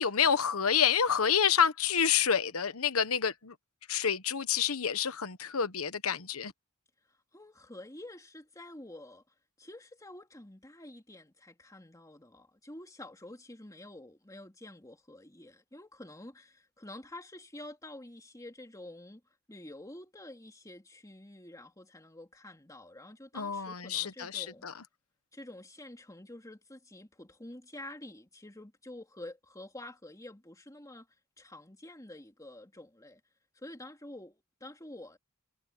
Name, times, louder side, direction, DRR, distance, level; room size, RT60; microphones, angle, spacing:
voice 1, 0.0-3.5 3.9-6.5 23.3-24.7, left 7 dB, 85° left, 1.2 m, -28 dB
voice 2, 7.1-9.2 9.6-19.2 19.5-24.7 25.3-31.1 31.4-33.2 33.5-35.2, left 1 dB, 15° left, 2.8 m, -48 dB
head